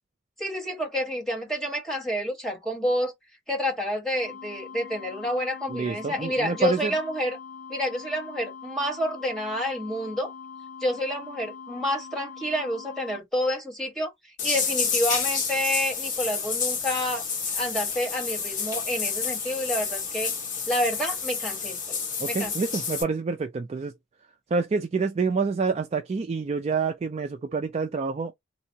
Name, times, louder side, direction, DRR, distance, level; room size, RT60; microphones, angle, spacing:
voice 1, 0.4-3.1 3.5-7.4 7.7-10.3 10.8-17.2 17.5-20.3 20.7-22.0 22.3-22.5, equal, ahead, 1.2 m, -29 dB
sound 1, 4.1-13.2, left 6 dB, 75° left, 0.7 m, -42 dB
voice 2, 5.7-6.9 22.2-23.9 24.5-28.3, right 4 dB, 30° right, 0.3 m, -27 dB
sound 2, 14.4-23.0, left 6 dB, 40° left, 1.1 m, -29 dB
3.4 x 2.0 x 2.7 m
head